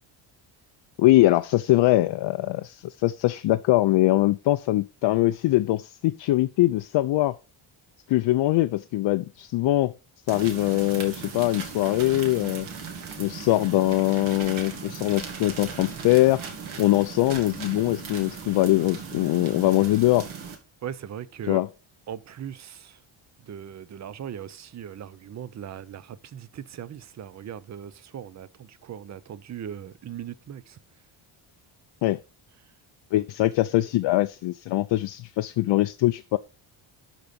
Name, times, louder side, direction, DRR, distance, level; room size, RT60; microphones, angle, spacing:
voice 1, 1.0-7.4 8.1-9.9 10.3-12.7 13.2-16.4 16.8-20.3 21.5-21.7 32.0-32.2 33.1-36.4, left 16 dB, 60° left, 0.6 m, -22 dB
sound 1, 10.3-20.6, right 6 dB, 70° right, 2.3 m, -38 dB
voice 2, 20.8-21.6 22.1-23.0 23.4-30.8 32.6-32.7, right 9 dB, 35° right, 0.6 m, -39 dB
12.0 x 4.0 x 5.2 m
cardioid pair, 140°, 50 cm